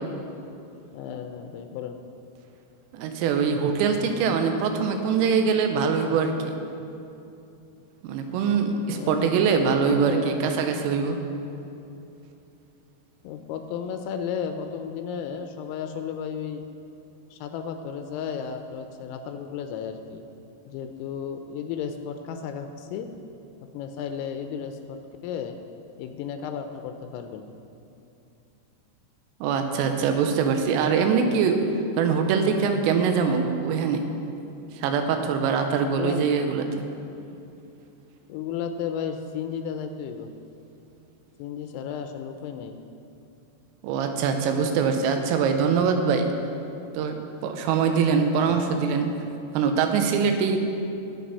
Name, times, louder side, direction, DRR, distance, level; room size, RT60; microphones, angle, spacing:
voice 1, 0.9-2.0 8.8-10.4 13.2-16.7 17.3-20.2 20.7-23.1 23.6-25.6 26.0-27.4 35.9-36.3 37.2-37.4 38.3-40.3 41.4-42.8 48.2-48.6, left 7 dB, 85° left, 7 dB, 3.2 m, -34 dB
voice 2, 2.9-6.6 8.0-11.2 29.4-31.6 32.0-34.0 34.8-36.7 43.8-46.4 46.9-49.1 49.5-50.6, right 6 dB, 80° right, 5 dB, 3.4 m, -23 dB
20.0 x 7.7 x 4.1 m, 2.8 s
omnidirectional pair, 6.0 m